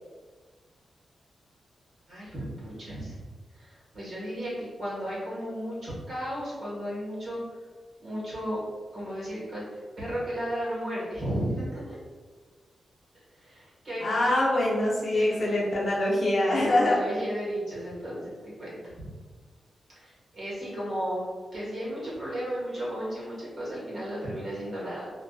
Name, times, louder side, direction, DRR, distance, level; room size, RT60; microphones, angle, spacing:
voice 1, 2.1-3.2 3.5-7.4 8.0-8.6 8.9-11.9 13.4-14.4 15.1-15.6 16.5-19.1 20.0-21.2 21.5-25.1, equal, 45° right, -8 dB, 1.1 m, -34 dB
voice 2, 14.0-17.0, left 1 dB, 50° left, -5 dB, 0.6 m, -24 dB
2.4 x 2.3 x 2.3 m, 1.5 s
wide cardioid pair, 145°, 0 cm